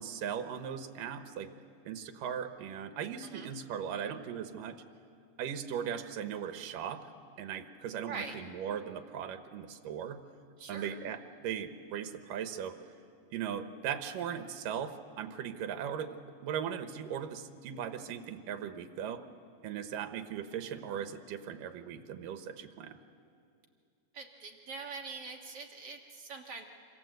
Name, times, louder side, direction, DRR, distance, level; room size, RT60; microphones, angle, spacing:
voice 1, 0.0-1.5 1.9-4.8 5.4-7.1 7.4-10.2 10.7-12.8 13.3-16.2 16.4-19.2 19.6-23.0, right 8 dB, 85° right, 8 dB, 2.8 m, -38 dB
voice 2, 10.6-11.0 24.1-26.7, right 4 dB, 55° right, 2 dB, 2.1 m, -43 dB
27.0 x 27.0 x 7.9 m, 2.4 s
omnidirectional pair, 3.8 m